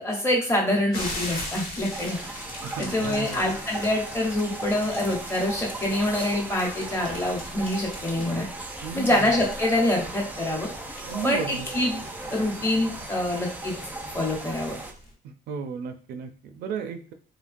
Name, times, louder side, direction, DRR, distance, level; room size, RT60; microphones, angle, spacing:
voice 1, 0.0-2.2 2.8-8.4 8.9-10.7 11.2-12.0 12.3-13.7 14.1-14.8, left 1 dB, 15° left, -1 dB, 1.0 m, -25 dB
sound 1, 0.9-15.1, left 1 dB, 60° left, 1.3 m, -41 dB
sound 2, 1.9-14.9, right 2 dB, 10° right, 0.4 m, -37 dB
voice 2, 2.6-3.4 8.8-9.3 11.0-11.7 15.2-17.1, right 6 dB, 70° right, 6 dB, 0.4 m, -34 dB
3.0 x 2.2 x 2.5 m, 0.38 s
cardioid pair, 110°, 17 cm